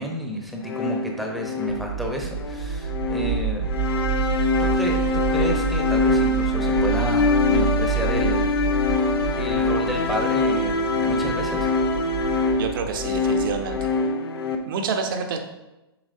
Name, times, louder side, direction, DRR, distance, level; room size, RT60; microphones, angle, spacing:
voice 1, 0.0-3.7 4.6-8.6 9.4-11.7, equal, ahead, 0 dB, 0.9 m, -31 dB
sound 1, 0.6-14.6, left 3 dB, 70° left, 0.8 m, -24 dB
sound 2, 1.7-13.8, right 7 dB, 70° right, 1.3 m, -29 dB
voice 2, 12.6-13.9 14.7-15.4, right 5 dB, 55° right, 5 dB, 0.9 m, -28 dB
7.4 x 4.7 x 2.7 m, 0.99 s
hypercardioid pair, 125°, 13 cm